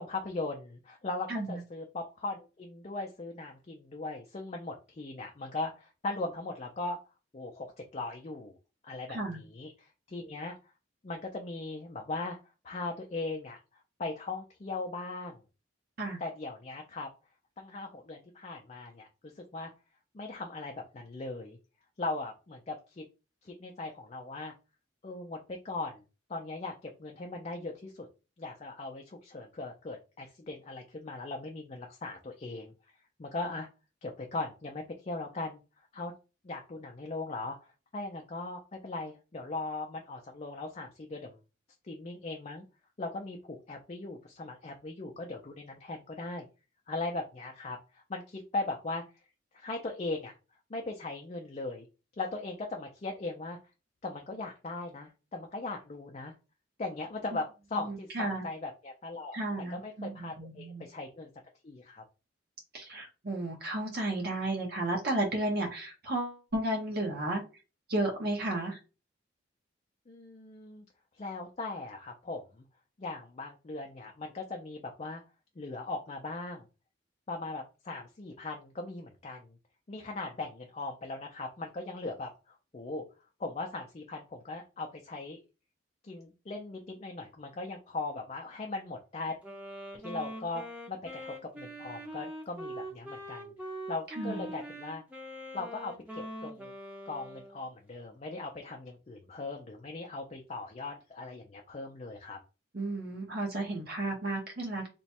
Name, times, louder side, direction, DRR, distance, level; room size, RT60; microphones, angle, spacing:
voice 1, 0.0-7.0 7.3-8.6 8.8-10.6 11.0-12.4 12.6-15.4 16.2-17.1 17.6-19.7 20.1-21.6 22.0-23.0 23.4-24.5 25.0-25.4 25.6-26.0 26.3-28.1 28.4-32.7 33.2-33.7 34.0-35.6 35.9-36.1 36.4-41.4 41.8-42.7 43.0-46.5 46.9-49.0 49.5-50.3 50.7-51.9 52.2-53.6 54.0-56.3 56.8-59.4 59.7-61.3 61.6-62.0 70.1-70.8 71.2-72.7 73.0-75.2 75.6-76.7 77.3-79.6 79.9-83.0 83.4-85.4 86.0-89.3 89.9-95.0 95.5-96.7 97.1-102.4, left 3 dB, 35° left, 2 dB, 0.4 m, -39 dB
voice 2, 1.3-1.6 9.1-9.4 16.0-16.2 57.8-58.4 59.3-60.8 62.7-67.4 67.9-68.8 94.1-94.5 102.7-104.9, right 2 dB, 50° right, 0 dB, 0.9 m, -33 dB
Wind instrument woodwind instrument, 89.4-97.6, equal, 5° right, 0.6 m, -43 dB
3.0 x 2.2 x 4.2 m, 0.31 s
head